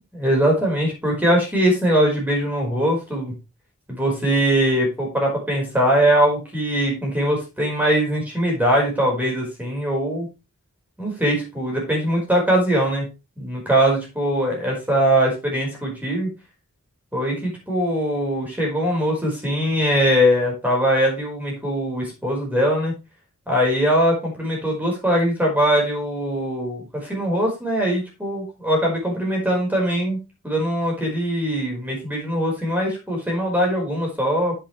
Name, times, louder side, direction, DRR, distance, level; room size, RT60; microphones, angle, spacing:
voice 1, 0.1-3.4 3.9-10.3 11.0-13.1 13.4-16.3 17.1-22.9 23.5-30.2 30.4-34.5, equal, 10° right, -1 dB, 4.7 m, -21 dB
9.8 x 8.5 x 3.3 m, 0.27 s
head